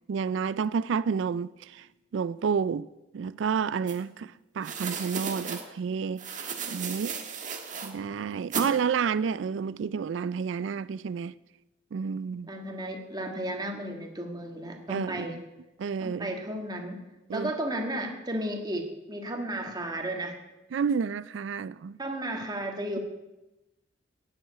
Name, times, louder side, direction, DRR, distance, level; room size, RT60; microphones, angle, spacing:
voice 1, 0.1-1.9 2.1-2.9 3.1-7.1 7.8-11.3 11.9-12.5 14.9-15.4 15.8-16.3 17.3-17.5 20.7-22.0, right 6 dB, 70° right, 0.4 m, -30 dB
sound 1, 3.9-4.0 4.6-5.6 6.2-7.9 8.5-8.7, right 6 dB, 40° right, 1.5 m, -35 dB
voice 2, 12.5-15.4 16.0-17.0 17.3-20.4 22.0-23.0, right 1 dB, 20° right, 1.7 m, -33 dB
9.4 x 7.8 x 9.3 m
head